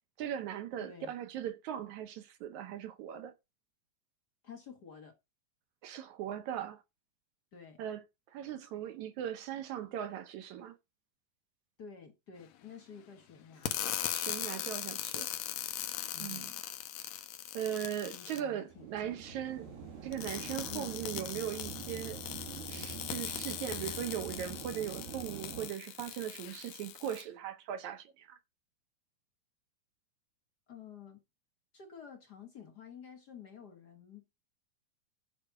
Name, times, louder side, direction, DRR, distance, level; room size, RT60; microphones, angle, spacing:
voice 1, 0.2-3.3 5.8-6.8 7.8-8.0 8.3-10.8 14.1-15.3 16.2-16.5 17.5-19.7 20.0-22.2 22.7-28.4, right 10 dB, 70° right, 1.9 m, -39 dB
voice 2, 0.8-1.2 4.4-5.2 7.5-7.8 11.8-13.8 16.1-16.6 18.1-19.4 20.7-21.0 30.7-31.2 31.7-34.3, left 7 dB, 50° left, 1.2 m, -51 dB
sound 1, 13.6-18.4 20.1-27.2, left 12 dB, 80° left, 2.8 m, -40 dB
sound 2, 18.7-25.7, right 6 dB, 90° right, 3.8 m, -45 dB
11.0 x 5.1 x 5.7 m
omnidirectional pair, 4.0 m